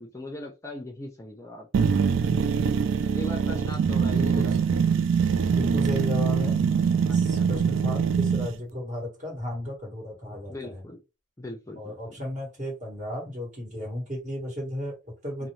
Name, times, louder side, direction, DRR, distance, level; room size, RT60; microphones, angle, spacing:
voice 1, 0.0-1.9 3.1-4.6 7.1-7.8 10.5-11.0 11.4-12.2 15.4-15.5, left 1 dB, 15° left, 1 dB, 0.4 m, -40 dB
sound 1, 1.7-8.5, right 6 dB, 70° right, 0.3 m, -23 dB
voice 2, 5.5-6.7 7.1-10.8 11.8-15.5, left 1 dB, 40° right, -2 dB, 1.4 m, -34 dB
2.6 x 2.0 x 3.1 m, 0.26 s
head